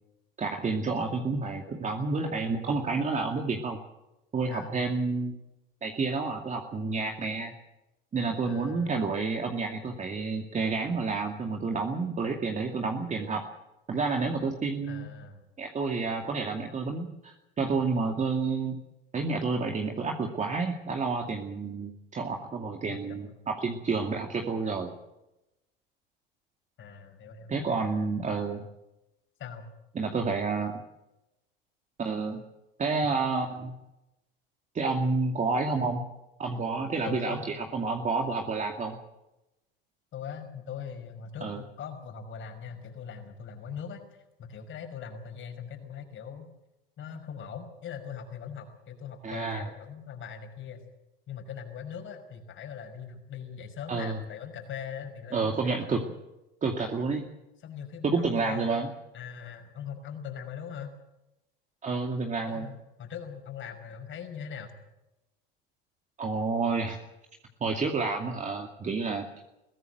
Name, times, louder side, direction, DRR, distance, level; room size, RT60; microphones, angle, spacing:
voice 1, 0.4-3.8 4.3-5.4 5.8-7.5 8.1-13.4 13.9-15.1 15.6-18.8 19.1-24.9 27.5-28.6 29.9-30.7 32.0-32.4 32.8-33.7 34.7-36.0 36.4-39.0 41.4-41.6 49.2-49.7 53.9-54.2 55.3-56.0 56.6-57.3 58.0-58.9 61.8-62.7 66.2-67.0 67.6-69.3, right 4 dB, 25° right, 2 dB, 2.4 m, -29 dB
voice 2, 4.5-4.8 8.5-9.0 14.8-15.4 22.9-23.3 26.8-27.9 29.4-29.7 37.0-37.6 40.1-44.1 44.4-46.5 47.0-50.8 51.3-55.9 57.6-60.9 62.4-64.7, left 7 dB, 45° left, 6 dB, 5.6 m, -41 dB
22.5 x 16.5 x 7.9 m, 0.94 s
hypercardioid pair, 90°, 29 cm